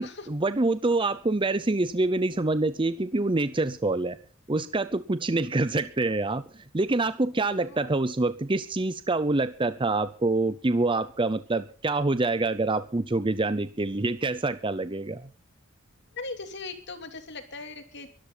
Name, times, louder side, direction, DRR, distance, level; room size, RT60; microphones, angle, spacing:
voice 1, 0.0-4.2 4.5-15.3, right 2 dB, 25° right, 13 dB, 0.7 m, -26 dB
voice 2, 16.1-18.1, left 3 dB, 55° left, 7 dB, 3.0 m, -39 dB
23.0 x 13.0 x 4.0 m, 0.40 s
head